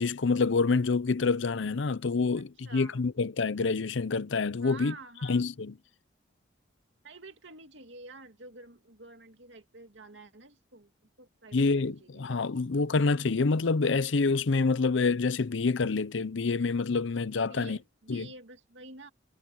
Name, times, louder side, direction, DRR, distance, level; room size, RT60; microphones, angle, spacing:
voice 1, 0.0-4.9 5.3-5.7 11.5-17.8 18.1-18.3, left 4 dB, 75° left, 0.6 m, -27 dB
voice 2, 2.4-3.0 4.6-5.5 7.0-10.9 11.2-12.7 17.4-19.1, right 3 dB, 70° right, 2.5 m, -49 dB
head